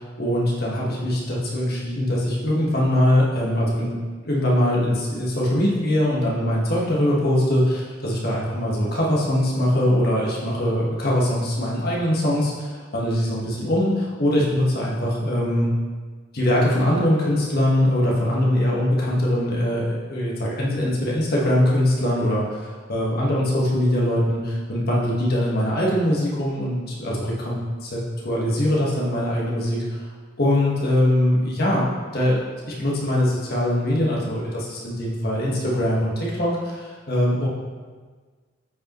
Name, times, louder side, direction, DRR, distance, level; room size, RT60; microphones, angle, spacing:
voice 1, 0.0-3.9 4.2-15.7 16.3-22.4 22.9-28.0 28.2-30.0 30.4-31.8 32.1-32.4 32.8-36.1 36.4-37.5, left 1 dB, 50° left, -4 dB, 1.5 m, -22 dB
8.3 x 4.8 x 3.1 m, 1.5 s
head